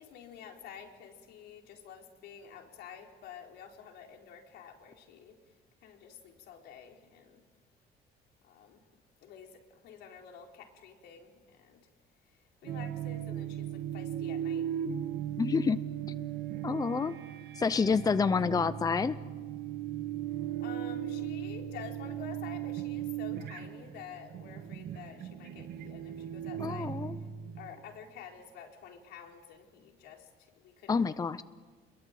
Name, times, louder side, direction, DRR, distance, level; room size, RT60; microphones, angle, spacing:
voice 1, 0.0-5.4 5.8-7.4 8.4-8.8 9.2-11.8 12.6-14.7 18.3-18.5 20.6-26.9 27.5-31.0 31.2-31.4, left 8 dB, 80° left, 2 dB, 4.7 m, -50 dB
sound 1, 12.6-27.8, right 10 dB, 70° right, 2.1 m, -37 dB
voice 2, 15.4-15.8 16.1-16.3 16.6-17.1 17.6-19.2 26.6-27.2 30.9-31.4, left 5 dB, 20° left, 14 dB, 0.7 m, -28 dB
27.0 x 22.0 x 9.2 m, 1.5 s
cardioid pair, 110°, 17 cm